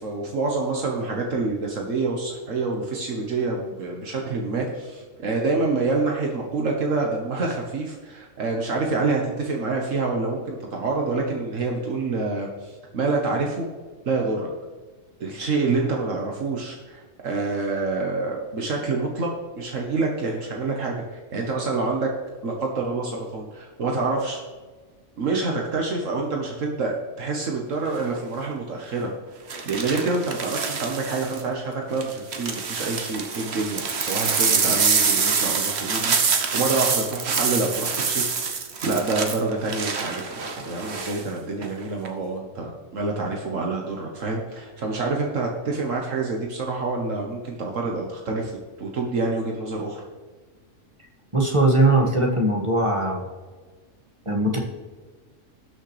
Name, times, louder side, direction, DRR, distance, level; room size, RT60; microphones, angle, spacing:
voice 1, 0.0-13.7 14.0-14.5 15.2-22.1 22.4-24.4 25.2-29.1 29.6-48.5 48.8-50.0, right 3 dB, 75° right, 0 dB, 1.6 m, -27 dB
sound 1, 27.9-28.2 29.5-31.4 32.0-41.2 41.6-42.1, right 5 dB, 55° right, 1.2 m, -26 dB
voice 2, 51.3-53.2 54.2-54.6, right 2 dB, 25° right, 0 dB, 1.7 m, -20 dB
19.0 x 6.4 x 3.3 m, 1.4 s
omnidirectional pair, 1.4 m